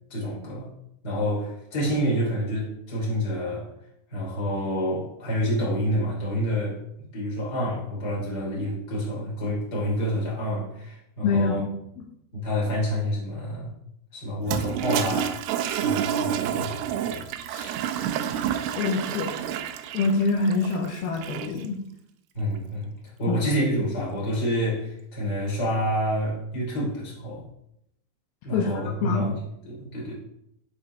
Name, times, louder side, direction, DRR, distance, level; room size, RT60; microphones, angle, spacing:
voice 1, 0.1-0.7 1.0-3.7 4.1-6.8 7.1-11.6 12.3-13.7 14.1-15.4 15.8-17.8 22.3-27.4 28.4-30.1, equal, 20° left, -5 dB, 2.0 m, -28 dB
voice 2, 11.2-11.7 12.0-12.1 18.8-19.5 19.9-21.8 23.3-23.4 28.5-28.7 29.0-29.3, left 4 dB, 75° left, 0 dB, 2.5 m, -25 dB
Toilet flush, 14.4-21.7, right 9 dB, 80° right, 2.4 m, -29 dB
12.5 x 4.4 x 2.7 m, 0.77 s
omnidirectional pair, 4.8 m